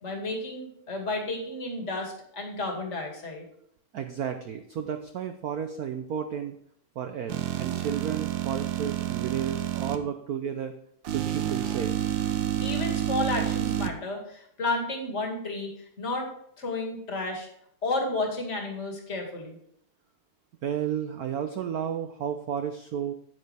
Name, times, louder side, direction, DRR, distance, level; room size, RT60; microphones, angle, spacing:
voice 1, 0.0-3.4 12.6-16.3 16.6-17.5 17.8-19.6, left 2 dB, 35° left, 1 dB, 2.3 m, -32 dB
voice 2, 3.9-6.6 7.0-10.7 11.1-11.9 20.6-23.1, right 8 dB, 80° right, 7 dB, 0.8 m, -32 dB
sound 1, 7.3-10.0 11.0-13.9, right 12 dB, 65° right, 1.4 m, -29 dB
9.7 x 9.2 x 3.3 m, 0.69 s
omnidirectional pair, 2.4 m